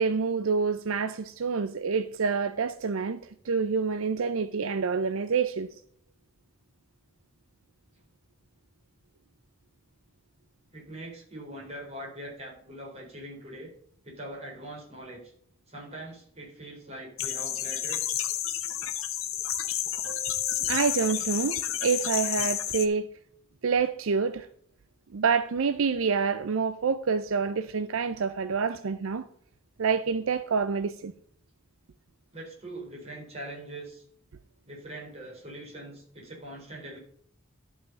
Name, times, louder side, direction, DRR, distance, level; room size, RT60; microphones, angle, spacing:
voice 1, 0.0-5.7 20.1-23.1 23.6-24.5 25.1-29.3 29.8-31.1, right 5 dB, 70° right, 0.5 m, -27 dB
voice 2, 10.7-13.7 14.0-15.3 15.7-18.1 32.3-34.1 34.6-37.0, right 1 dB, 30° right, 3.9 m, -42 dB
sound 1, 17.2-22.9, left 11 dB, 70° left, 1.0 m, -30 dB
12.0 x 5.8 x 5.3 m
head